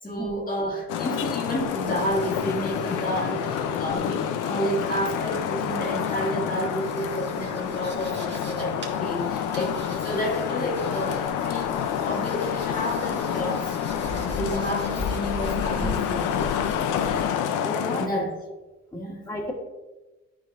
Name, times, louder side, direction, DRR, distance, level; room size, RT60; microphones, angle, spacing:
voice 1, 0.0-11.8 12.0-16.4 18.0-18.3 18.9-19.3, equal, 30° left, -2 dB, 1.6 m, -30 dB
Traffic noise roadway noise, 0.9-18.1, left 8 dB, 85° left, 0.6 m, -28 dB
sound 1, 1.6-17.3, left 2 dB, 35° right, 2.0 m, -40 dB
voice 2, 17.6-18.0 18.9-19.5, left 1 dB, 10° left, -2 dB, 1.6 m, -34 dB
12.5 x 4.9 x 2.6 m, 1.1 s
cardioid pair, 90°, 30 cm